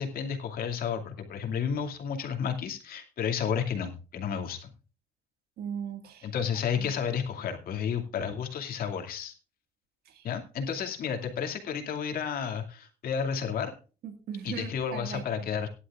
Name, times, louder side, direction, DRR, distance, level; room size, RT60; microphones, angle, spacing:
voice 1, 0.0-4.7 6.2-9.3 10.2-13.7 14.4-15.7, left 7 dB, 60° left, 4 dB, 2.5 m, -32 dB
voice 2, 5.6-6.3 6.8-6.9 10.1-10.3 14.0-15.2, right 7 dB, 65° right, 6 dB, 2.0 m, -38 dB
17.5 x 11.5 x 2.5 m, 0.34 s
cardioid pair, 110°, 17 cm